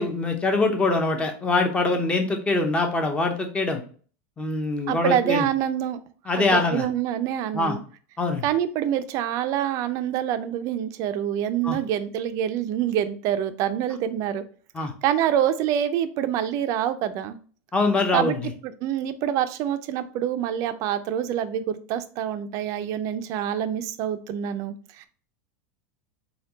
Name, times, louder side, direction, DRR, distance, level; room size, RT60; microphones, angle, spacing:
voice 1, 0.0-3.8 4.4-5.5 6.3-6.9 7.5-7.8 8.2-8.4 11.6-11.8 14.7-14.9 17.7-18.5, left 3 dB, 15° left, 4 dB, 0.7 m, -23 dB
voice 2, 4.9-6.0 6.4-7.8 8.4-14.4 15.0-17.4 18.1-25.1, right 10 dB, 45° right, 10 dB, 0.4 m, -26 dB
4.3 x 2.3 x 3.9 m, 0.42 s
supercardioid pair, 145°, 8 cm